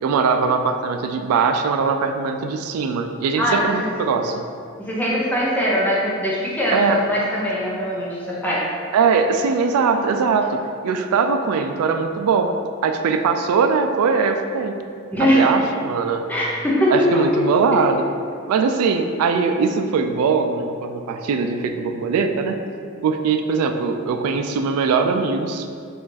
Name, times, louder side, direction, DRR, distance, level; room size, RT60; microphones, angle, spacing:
voice 1, 0.0-4.4 6.7-7.0 8.9-12.5 12.8-14.7 15.2-16.2 16.9-18.0 18.5-22.5 23.0-25.8, right 5 dB, 90° right, 11 dB, 0.3 m, -21 dB
voice 2, 3.4-3.8 4.8-8.6 15.1-15.4 16.3-17.1, equal, 10° left, -6 dB, 0.6 m, -21 dB
4.8 x 2.4 x 3.9 m, 2.3 s
head